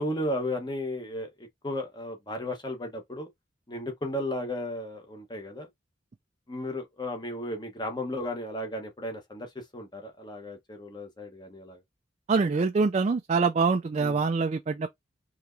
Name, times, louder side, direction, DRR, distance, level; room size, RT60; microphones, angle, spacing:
voice 1, 0.0-3.3 3.7-5.7 6.5-11.8 14.0-14.2, left 1 dB, 25° left, 1.0 m, -34 dB
voice 2, 12.3-14.9, right 4 dB, 35° right, 0.3 m, -25 dB
4.3 x 2.9 x 2.6 m
head